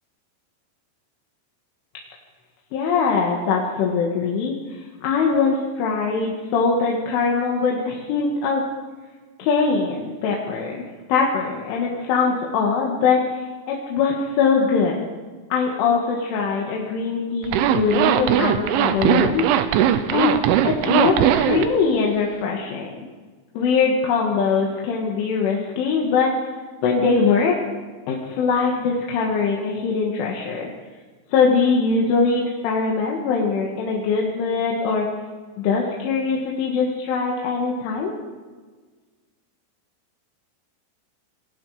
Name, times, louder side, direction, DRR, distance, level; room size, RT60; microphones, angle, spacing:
voice 1, 2.7-8.6 9.4-10.8 11.1-15.0 15.5-19.5 20.1-20.4 20.6-23.1 23.6-26.3 26.8-27.6 28.1-30.7 31.3-35.1 35.6-38.1, left 5 dB, 80° left, -1 dB, 4.5 m, -22 dB
Zipper (clothing), 17.4-21.7, right 10 dB, 85° right, 3.5 m, -19 dB
27.5 x 20.0 x 5.1 m, 1.4 s
omnidirectional pair, 5.6 m